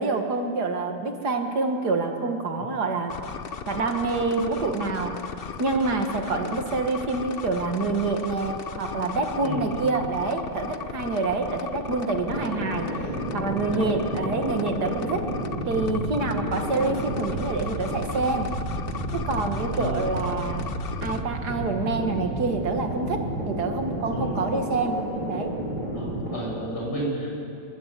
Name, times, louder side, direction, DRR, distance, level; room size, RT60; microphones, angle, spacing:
voice 1, 0.0-3.1 3.7-5.1 5.6-15.2 15.7-18.5 19.1-20.7 21.0-25.0 25.3-25.5, right 3 dB, 55° right, 4 dB, 2.2 m, -27 dB
sound 1, 3.1-21.2, left 6 dB, 85° left, 0.5 m, -36 dB
sound 2, 12.2-26.3, right 1 dB, 20° left, 6.8 m, -31 dB
voice 2, 25.9-27.3, equal, 55° left, -4 dB, 7.7 m, -32 dB
27.0 x 13.0 x 8.4 m, 2.7 s
omnidirectional pair, 2.1 m